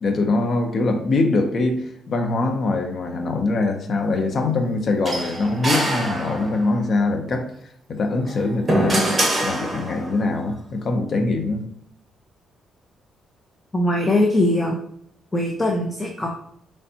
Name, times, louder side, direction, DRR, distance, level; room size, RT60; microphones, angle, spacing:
voice 1, 0.0-7.4 7.9-9.1 9.4-11.6, left 3 dB, 50° left, 5 dB, 0.8 m, -23 dB
sound 1, 5.1-6.8 8.1-10.2, right 1 dB, 20° right, 1.5 m, -24 dB
voice 2, 13.7-14.8 15.3-16.3, left 1 dB, 15° left, 1 dB, 0.7 m, -21 dB
5.4 x 3.2 x 2.8 m, 0.69 s
cardioid pair, 90°, 0 cm